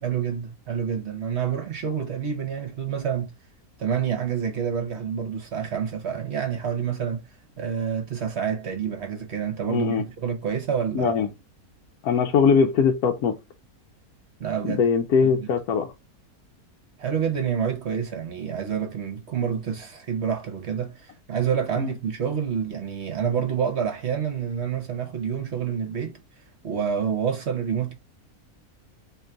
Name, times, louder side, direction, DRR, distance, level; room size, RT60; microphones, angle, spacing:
voice 1, 0.0-3.3 3.8-7.2 7.6-11.1 14.4-14.8 15.2-15.3 17.0-26.2 26.6-27.9, right 7 dB, 55° right, 1.0 m, -28 dB
voice 2, 9.7-10.0 10.9-11.3 12.0-13.3 14.7-15.9 21.8-21.9, left 6 dB, 85° left, 1.2 m, -21 dB
3.8 x 3.0 x 4.5 m
omnidirectional pair, 1.6 m